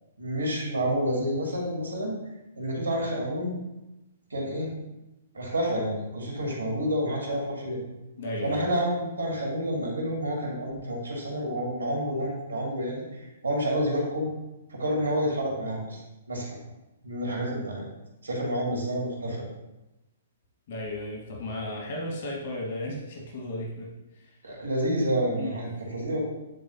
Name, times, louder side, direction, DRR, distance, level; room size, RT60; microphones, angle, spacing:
voice 1, 0.2-2.1 2.6-3.6 4.3-4.7 5.3-7.8 8.4-13.0 13.4-14.3 14.7-16.0 16.3-16.6 17.0-17.8 18.2-19.4 24.4-26.2, equal, 85° right, -3 dB, 2.3 m, -29 dB
voice 2, 8.2-8.7 20.7-23.9 25.4-25.6, left 1 dB, 55° left, -2 dB, 1.7 m, -34 dB
10.0 x 3.8 x 2.8 m, 1.0 s
figure-of-eight pair, 120°, 0 cm